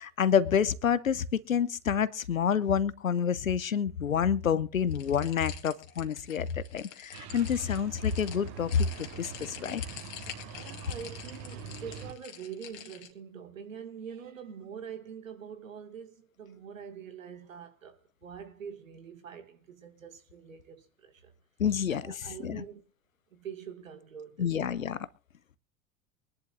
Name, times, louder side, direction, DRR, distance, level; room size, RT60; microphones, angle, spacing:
voice 1, 0.0-9.8 21.6-22.6 24.4-25.1, left 7 dB, 85° left, 0.8 m, -28 dB
sound 1, 4.9-13.1, left 11 dB, 55° left, 2.3 m, -46 dB
sound 2, 7.1-12.1, right 6 dB, 45° right, 1.5 m, -44 dB
voice 2, 10.4-21.3 21.9-22.8 23.3-24.8, right 7 dB, 75° right, 2.2 m, -45 dB
24.0 x 11.0 x 2.6 m
figure-of-eight pair, 75°, 40 cm